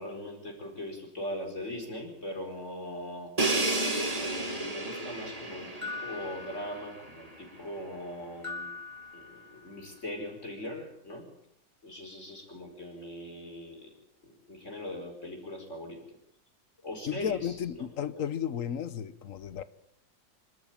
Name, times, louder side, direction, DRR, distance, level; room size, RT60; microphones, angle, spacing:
voice 1, 0.0-3.3 4.2-8.8 9.1-11.3 11.8-13.9 14.2-16.0 16.8-17.9, left 1 dB, 35° left, 2 dB, 5.3 m, -40 dB
Crash cymbal, 3.4-7.2, right 2 dB, 20° right, 2.3 m, -32 dB
sound 1, 5.8-7.3 8.4-9.9, left 3 dB, 15° left, 3.2 m, -42 dB
voice 2, 17.1-19.6, left 8 dB, 50° left, 16 dB, 1.1 m, -33 dB
26.0 x 13.0 x 8.9 m, 0.77 s
omnidirectional pair, 2.1 m